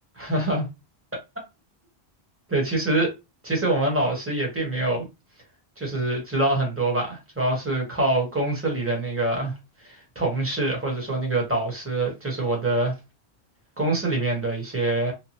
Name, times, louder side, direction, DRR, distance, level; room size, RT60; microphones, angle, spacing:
voice 1, 0.2-0.7 2.5-3.1 3.4-5.1 5.8-9.5 9.8-12.9 13.8-15.1, right 2 dB, 15° right, 1.0 m, -25 dB
3.1 x 2.1 x 2.7 m
omnidirectional pair, 1.1 m